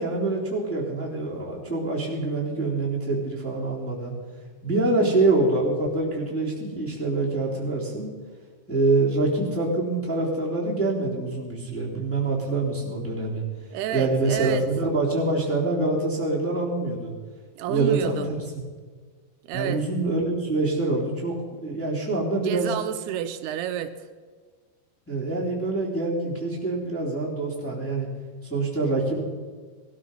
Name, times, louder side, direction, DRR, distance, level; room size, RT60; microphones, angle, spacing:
voice 1, 0.0-4.1 4.6-8.1 8.7-13.4 13.9-17.1 17.7-18.6 19.5-22.7 25.1-28.1 28.5-29.2, right 2 dB, 5° left, -5 dB, 2.8 m, -25 dB
voice 2, 13.7-14.7 17.6-18.3 19.5-19.8 22.4-23.9, right 10 dB, 85° right, 9 dB, 2.7 m, -29 dB
20.0 x 12.5 x 5.5 m, 1.5 s
omnidirectional pair, 4.7 m